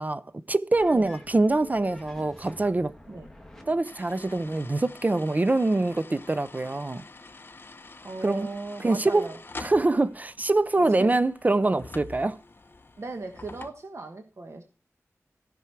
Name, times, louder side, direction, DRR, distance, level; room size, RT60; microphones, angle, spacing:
voice 1, 0.0-2.9 3.7-7.0 8.2-8.5 8.8-9.3 9.6-12.4, right 2 dB, 30° right, 0.5 m, -24 dB
sound 1, 0.7-4.7, left 1 dB, 5° left, 1.9 m, -49 dB
sound 2, 3.8-13.7, left 3 dB, 40° left, 0.8 m, -46 dB
voice 2, 8.0-9.4 10.9-11.1 13.0-14.6, right 3 dB, 55° right, 1.3 m, -37 dB
15.0 x 6.1 x 4.6 m
wide cardioid pair, 90°, 5 cm